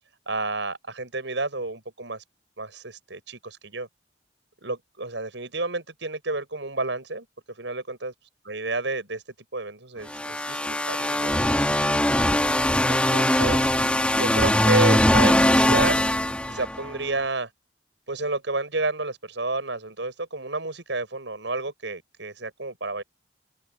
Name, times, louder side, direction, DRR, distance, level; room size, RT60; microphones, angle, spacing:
voice 1, 0.3-2.2 2.6-3.9 4.6-7.3 7.6-8.1 8.5-9.2 9.5-11.6 12.9-13.7 14.2-16.0 16.5-17.5 18.1-23.0, right 2 dB, 80° right, 6.3 m, -30 dB
sound 1, 10.1-17.0, left 1 dB, 5° left, 2.5 m, -21 dB
head